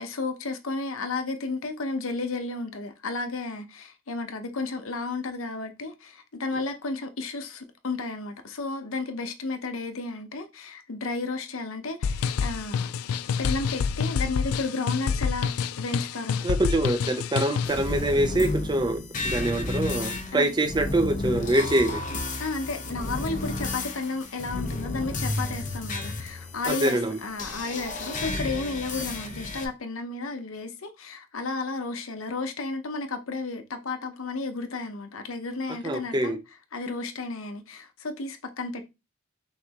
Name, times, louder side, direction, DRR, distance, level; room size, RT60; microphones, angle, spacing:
voice 1, 0.0-12.9 13.4-15.5 15.8-16.4 20.3-20.5 22.4-36.4 36.7-38.8, left 3 dB, 70° left, 0.8 m, -33 dB
sound 1, 12.0-17.9, left 6 dB, 90° left, 0.3 m, -28 dB
voice 2, 16.4-22.0 26.7-27.2 35.8-36.4, right 1 dB, 20° right, 0.5 m, -25 dB
sound 2, 17.6-29.6, left 2 dB, 35° left, 0.8 m, -32 dB
5.8 x 3.1 x 2.9 m
head